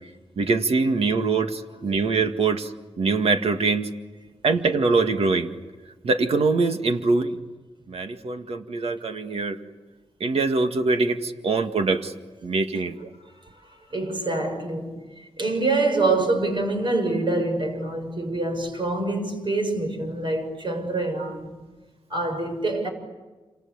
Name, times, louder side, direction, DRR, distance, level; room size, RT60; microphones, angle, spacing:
voice 1, 0.4-2.7 3.0-3.9 4.4-5.5 6.0-7.4 7.9-9.6 10.2-12.1 12.4-13.1, right 3 dB, 75° right, 2.0 m, -23 dB
voice 2, 13.9-14.9 15.4-21.5 22.1-22.9, right 2 dB, 55° right, 6.9 m, -25 dB
28.5 x 27.5 x 7.3 m
cardioid pair, 75°, 10 cm